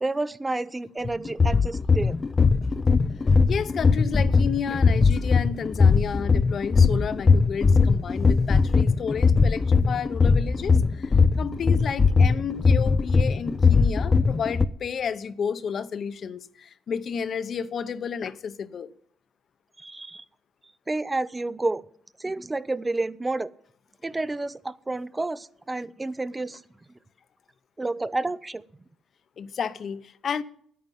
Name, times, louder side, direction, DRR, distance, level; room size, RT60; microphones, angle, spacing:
voice 1, 0.0-2.2 19.8-20.2 20.9-21.8 22.2-23.5 24.0-26.6 27.8-28.6, right 2 dB, 20° right, 0.5 m, -30 dB
sound 1, 1.0-14.7, left 4 dB, 30° left, 0.5 m, -20 dB
voice 2, 3.3-18.9 29.4-30.4, left 7 dB, 55° left, 0.8 m, -32 dB
9.6 x 9.3 x 9.2 m
cardioid pair, 90°, 0 cm